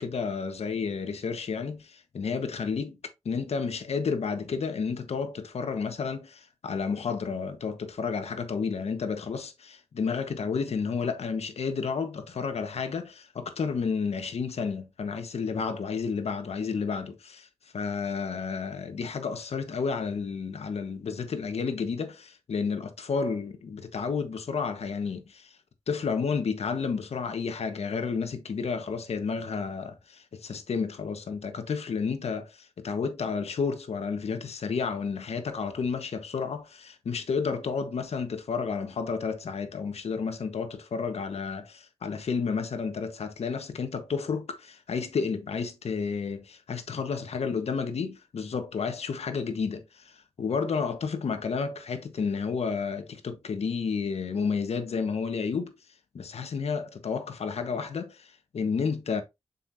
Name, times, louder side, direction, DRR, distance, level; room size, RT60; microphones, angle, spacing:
voice 1, 0.0-3.0 3.2-17.5 17.7-25.5 25.9-55.7 56.1-59.2, left 5 dB, 80° left, 1.4 m, -31 dB
7.5 x 5.7 x 2.8 m
cardioid pair, 70°, 11 cm